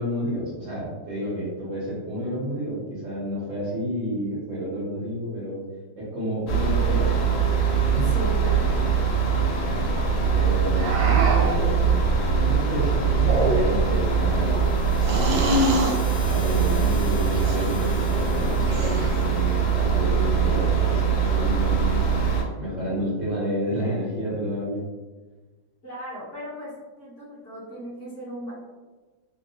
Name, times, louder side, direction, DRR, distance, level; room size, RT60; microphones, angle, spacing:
voice 1, 0.0-5.6 6.0-7.2 7.8-8.1 10.3-12.0 12.4-15.6 16.2-22.1 22.6-24.8, equal, 50° right, -8 dB, 1.1 m, -30 dB
sound 1, 6.5-22.4, right 6 dB, 85° left, 1.4 m, -22 dB
voice 2, 8.0-8.7 25.8-28.5, equal, 45° left, -9 dB, 1.4 m, -37 dB
sound 2, 10.7-11.6 13.1-13.9 15.0-16.0 17.3-17.7 18.6-19.3, equal, 80° right, 1.3 m, -25 dB
sound 3, 13.8-20.0, left 2 dB, 70° left, 1.6 m, -44 dB
3.4 x 2.2 x 2.7 m, 1.3 s
omnidirectional pair, 2.0 m